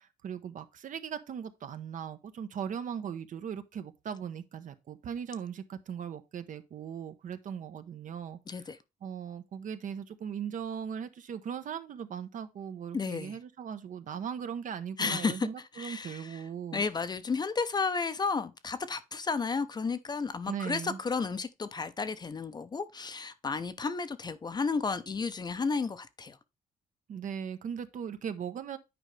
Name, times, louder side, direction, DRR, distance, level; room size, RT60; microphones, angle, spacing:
voice 1, 0.0-8.6 9.0-16.8 20.5-21.0 27.1-28.8, right 8 dB, 55° right, 0.8 m, -39 dB
voice 2, 8.5-8.8 12.9-13.4 15.0-15.5 15.7-16.4 16.7-26.4, left 4 dB, 25° left, 0.6 m, -32 dB
9.0 x 5.0 x 3.2 m
cardioid pair, 140°, 16 cm